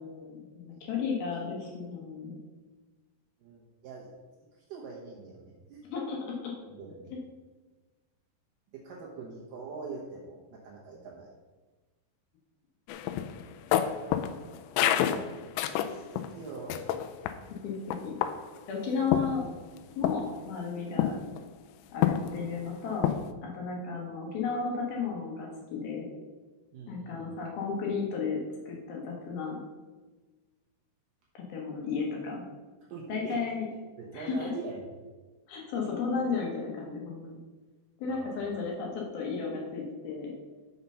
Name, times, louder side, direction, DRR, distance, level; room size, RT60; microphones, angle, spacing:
voice 1, 0.0-2.4 5.9-6.5 17.6-18.1 18.7-19.5 20.0-21.2 21.9-23.1 23.4-26.1 26.9-28.4 28.7-29.6 31.3-32.4 33.1-33.7 34.1-34.5 35.5-37.4 38.0-40.3, left 5 dB, 65° left, -1 dB, 2.6 m, -34 dB
voice 2, 3.4-4.1 4.5-5.8 6.7-7.1 8.7-11.3 15.0-15.3 15.6-16.8 26.7-27.3 32.9-33.4 34.0-34.9 38.1-38.6, right 4 dB, 85° right, -3 dB, 1.9 m, -43 dB
sound 1, 12.9-16.3 16.7-17.4 17.9-18.6 19.1-19.8 20.0-20.3 21.0-21.4 22.0-22.6 23.0-23.3, left 10 dB, 85° left, 2.6 m, -29 dB
6.6 x 5.9 x 5.5 m, 1.3 s
omnidirectional pair, 5.3 m